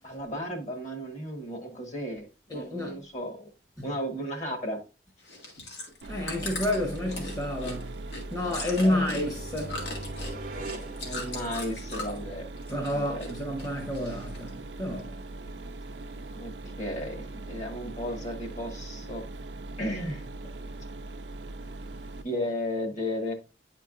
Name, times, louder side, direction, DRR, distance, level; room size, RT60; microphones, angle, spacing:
voice 1, 0.0-3.5 3.8-4.8 8.8-9.1 11.0-12.5 12.9-13.2 16.4-16.5 16.8-19.2 19.8-20.3 22.2-23.3, left 1 dB, 45° left, 1.4 m, -34 dB
voice 2, 2.5-3.0 3.8-3.9 6.1-8.0 8.3-9.8 12.7-15.1, left 1 dB, 20° left, 1.0 m, -30 dB
Chewing mastication, 5.2-12.3 12.6-13.3 13.6-14.5 15.0-15.1, left 2 dB, 80° left, 1.8 m, -39 dB
Mechanisms, 6.0-22.2, right 2 dB, 90° right, 0.5 m, -40 dB
sound 1, 8.9-11.9, right 1 dB, 50° right, 0.7 m, -41 dB
8.9 x 4.5 x 2.5 m
head